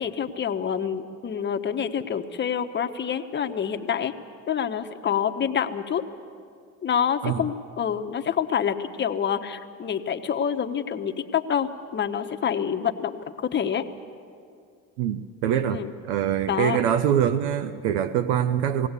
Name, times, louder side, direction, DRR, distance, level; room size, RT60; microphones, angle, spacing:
voice 1, 0.0-4.1 4.5-6.0 6.8-13.8 15.7-15.9 16.5-16.8, left 8 dB, 35° left, 7 dB, 1.1 m, -27 dB
voice 2, 15.0-18.9, right 9 dB, 85° right, 13 dB, 0.8 m, -24 dB
19.5 x 17.0 x 8.2 m, 2.3 s
supercardioid pair, 90°, 32 cm